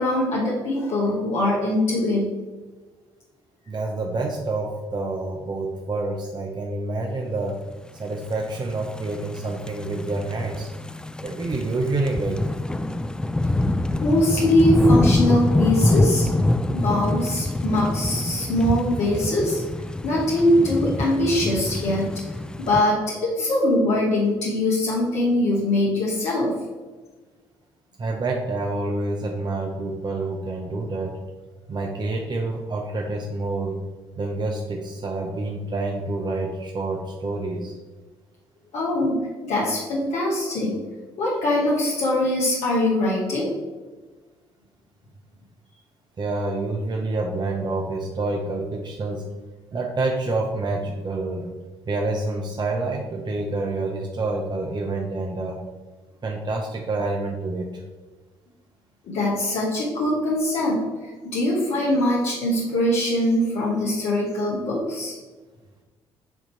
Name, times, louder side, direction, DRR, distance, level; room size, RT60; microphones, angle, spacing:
voice 1, 0.0-2.4 14.0-16.3 16.7-19.6 20.0-22.4 22.7-26.5 38.7-39.2 39.4-40.8 41.2-43.5 59.0-65.1, left 1 dB, 70° left, -4 dB, 1.2 m, -22 dB
voice 2, 3.7-7.6 8.0-10.7 11.2-12.5 28.0-31.2 31.7-33.8 34.2-37.8 46.2-49.2 49.7-51.5 51.9-55.6 56.2-57.8, right 2 dB, 35° right, 1 dB, 0.8 m, -27 dB
sound 1, 8.5-22.8, left 1 dB, 5° left, 0.3 m, -25 dB
7.9 x 2.9 x 4.3 m, 1.3 s
hypercardioid pair, 50°, 12 cm